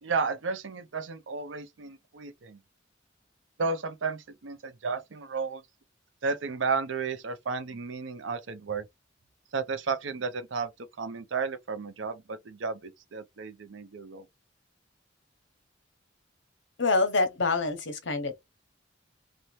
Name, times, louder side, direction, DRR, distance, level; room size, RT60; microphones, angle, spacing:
voice 1, 0.0-2.6 3.6-5.6 6.2-8.8 9.5-10.7 11.0-14.3, right 4 dB, 85° right, 0.6 m, -33 dB
voice 2, 16.8-18.4, left 3 dB, 70° left, 0.8 m, -26 dB
2.7 x 2.2 x 3.0 m
head